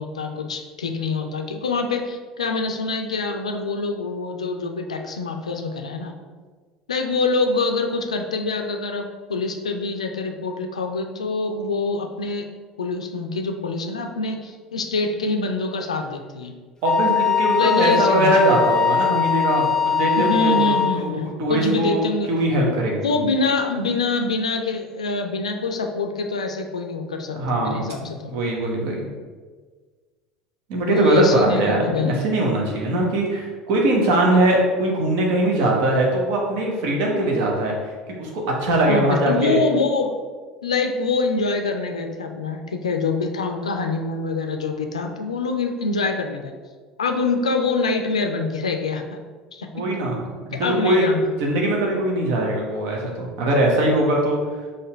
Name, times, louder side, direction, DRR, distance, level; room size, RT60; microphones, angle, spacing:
voice 1, 0.0-6.1 6.9-12.5 12.8-16.5 17.6-18.3 20.2-22.3 22.7-22.8 23.0-28.4 30.9-32.1 38.9-40.1 40.6-46.5 47.0-49.2 49.5-49.8 50.6-51.3, left 3 dB, 80° left, 5 dB, 0.4 m, -25 dB
Wind instrument woodwind instrument, 16.8-21.0, left 7 dB, 20° left, 0.6 m, -21 dB
voice 2, 16.8-21.1 21.4-22.0 22.3-23.1 27.3-29.1 30.7-37.7 38.2-39.6 49.7-50.2 50.8-51.1 51.4-54.4, right 1 dB, 55° right, -1 dB, 0.9 m, -21 dB
4.1 x 2.5 x 4.3 m, 1.5 s
figure-of-eight pair, 65°, 3 cm